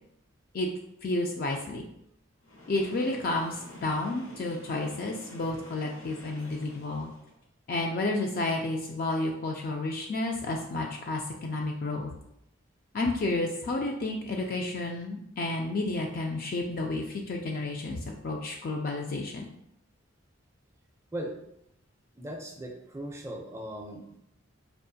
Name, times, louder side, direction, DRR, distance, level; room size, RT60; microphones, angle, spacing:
voice 1, 1.0-1.8 2.7-7.1 7.7-12.1 12.9-19.5, left 2 dB, 45° left, 1 dB, 0.3 m, -31 dB
Train, 2.4-7.4, left 1 dB, 80° left, 1.0 m, -48 dB
voice 2, 22.1-24.2, right 1 dB, 15° right, 1 dB, 0.4 m, -38 dB
4.5 x 2.4 x 2.6 m, 0.78 s
head